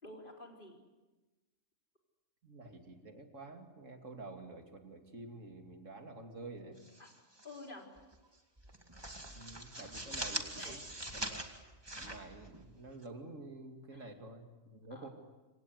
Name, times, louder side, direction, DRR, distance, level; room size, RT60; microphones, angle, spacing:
voice 1, 0.0-0.8 7.0-7.1 7.4-7.9 10.0-10.1 10.6-10.8 13.9-14.1 14.9-15.1, left 2 dB, 40° left, 1 dB, 4.6 m, -50 dB
voice 2, 2.4-6.8 9.3-10.8 11.1-11.4 11.9-15.1, right 2 dB, 85° right, 4 dB, 3.1 m, -49 dB
sound 1, 6.8-7.7 8.0-8.2 8.6-13.0, right 1 dB, 20° right, 2.2 m, -43 dB
26.5 x 26.5 x 8.1 m, 1.2 s
omnidirectional pair, 1.3 m